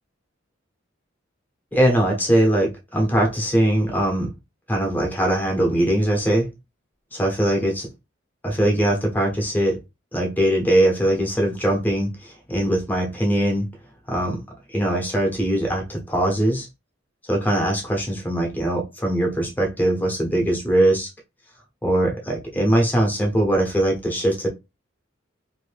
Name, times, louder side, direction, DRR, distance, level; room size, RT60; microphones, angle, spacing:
voice 1, 1.7-4.3 4.7-6.5 7.1-7.9 8.4-9.8 10.1-13.7 14.1-14.4 14.7-16.7 17.2-21.1 21.8-24.5, right 1 dB, 10° left, 0.9 m, -21 dB
2.6 x 2.6 x 3.3 m
head